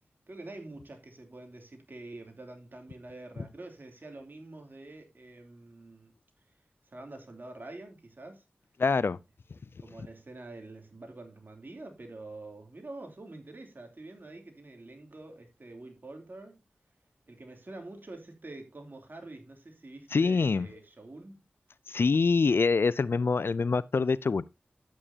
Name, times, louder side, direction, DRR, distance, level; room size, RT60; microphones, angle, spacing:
voice 1, 0.3-6.1 6.9-8.4 9.8-16.6 17.3-21.4, right 2 dB, 55° right, 3.0 m, -46 dB
voice 2, 8.8-9.2 20.1-20.7 21.9-24.5, left 4 dB, 70° left, 0.5 m, -25 dB
11.5 x 8.6 x 2.8 m
cardioid pair, 40°, 4 cm